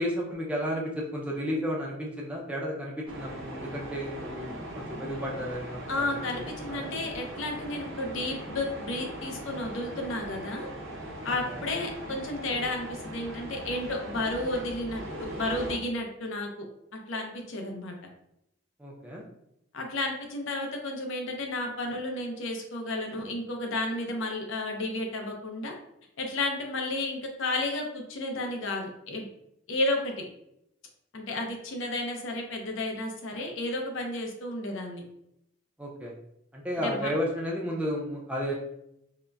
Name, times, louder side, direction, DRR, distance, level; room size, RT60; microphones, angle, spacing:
voice 1, 0.0-6.9 11.5-11.7 18.8-19.2 35.8-36.1 36.5-38.5, equal, 5° right, -3 dB, 0.3 m, -33 dB
sound 1, 3.1-15.8, equal, 70° right, 0.7 m, -40 dB
voice 2, 5.9-10.7 11.2-16.7 16.9-18.0 19.7-25.7 26.2-29.3 29.7-30.2 31.1-35.0 36.8-37.1, left 2 dB, 65° left, 2 dB, 0.5 m, -32 dB
3.7 x 2.1 x 2.2 m, 0.80 s
head